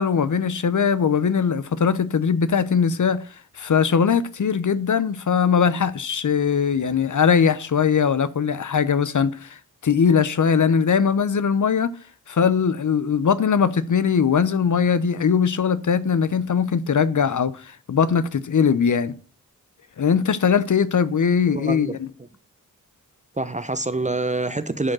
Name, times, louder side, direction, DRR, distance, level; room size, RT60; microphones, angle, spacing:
voice 1, 0.0-3.2 3.6-9.6 9.8-11.9 12.3-19.1 20.0-22.1, left 6 dB, 60° left, 0.8 m, -20 dB
voice 2, 21.5-22.0 23.4-24.9, right 2 dB, 20° right, 0.8 m, -26 dB
11.0 x 5.2 x 6.2 m
wide cardioid pair, 70°, 35 cm